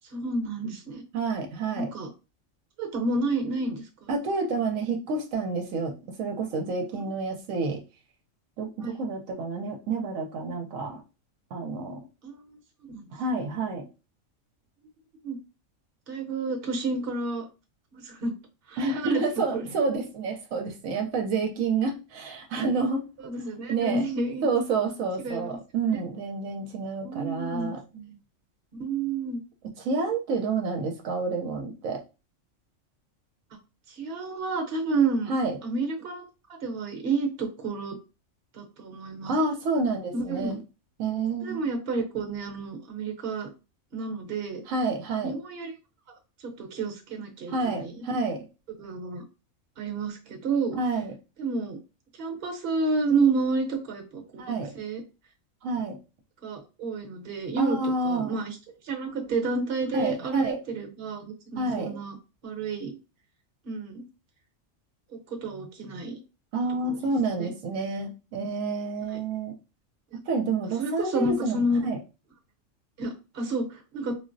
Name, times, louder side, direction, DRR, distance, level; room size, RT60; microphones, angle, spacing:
voice 1, 0.1-1.0 1.7-2.1 2.8-4.1 6.9-7.0 8.8-9.0 12.2-12.4 12.9-13.1 15.2-15.4 16.1-17.5 17.9-18.3 18.7-19.2 19.5-19.6 23.2-24.4 25.2-25.6 27.0-28.2 28.7-29.4 33.9-35.3 35.6-36.3 36.6-38.0 38.5-39.3 40.1-40.6 41.4-43.5 43.9-44.6 45.2-45.7 46.6-48.0 48.8-49.2 49.8-50.8 51.4-51.8 52.2-54.4 54.7-55.0 56.4-57.8 58.0-58.6 58.8-62.2 62.4-63.0 63.6-64.0 65.1-66.2 66.8-67.0 67.3-67.5 69.1-69.2 70.8-71.8 73.0-74.2, right 3 dB, 55° right, 2 dB, 1.0 m, -30 dB
voice 2, 1.1-1.9 4.1-7.8 8.6-11.0 11.5-12.0 13.1-13.9 18.8-23.0 23.7-24.0 24.4-27.8 29.8-32.0 35.3-35.6 39.3-40.6 41.0-41.7 44.7-45.4 47.5-48.5 50.7-51.1 54.4-54.7 55.6-56.0 57.6-58.4 59.9-60.6 61.6-62.0 66.5-69.6 70.3-72.0, right 3 dB, 80° right, 3 dB, 1.0 m, -29 dB
3.6 x 2.0 x 2.5 m, 0.30 s
omnidirectional pair, 1.4 m